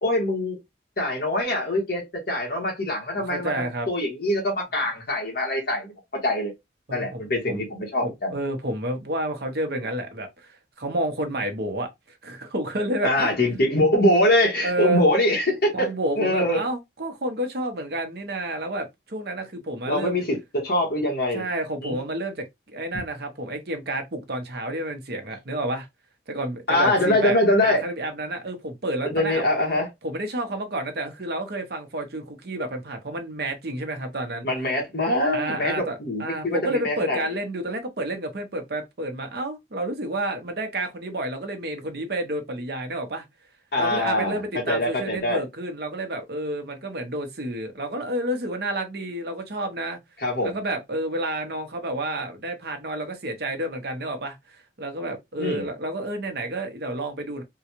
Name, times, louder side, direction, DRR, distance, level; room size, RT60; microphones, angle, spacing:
voice 1, 0.0-0.6 1.0-6.5 6.9-8.3 13.0-15.9 16.2-16.6 19.8-21.4 21.8-21.9 26.7-27.9 29.0-29.9 34.4-37.4 43.7-44.4 44.7-45.4 50.2-50.6 55.4-55.7, left 1 dB, 60° left, 1.5 m, -23 dB
voice 2, 3.2-3.9 6.9-7.6 8.0-10.3 10.8-11.9 12.2-13.3 14.6-15.0 15.7-20.2 21.3-22.4 22.7-25.9 26.3-27.4 27.6-29.4 30.0-34.5 35.3-43.2 43.8-50.0 50.4-57.4, right 1 dB, 60° right, 0.9 m, -30 dB
3.7 x 2.3 x 2.9 m
head